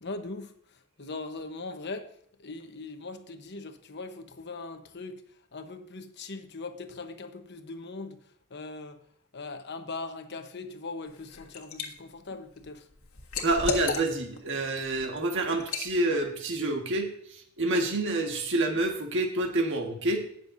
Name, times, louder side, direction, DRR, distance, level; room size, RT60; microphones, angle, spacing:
voice 1, 0.0-0.5 1.0-2.1 2.4-5.2 5.5-8.2 8.5-9.0 9.3-12.8, left 3 dB, 50° left, 7 dB, 1.0 m, -40 dB
Liquid, 11.1-11.9 12.3-14.4 14.8-15.0 15.6-15.9, left 4 dB, 70° left, 1.5 m, -34 dB
voice 2, 13.4-20.2, right 2 dB, 60° right, 3 dB, 1.6 m, -28 dB
19.0 x 6.8 x 2.6 m, 0.66 s
head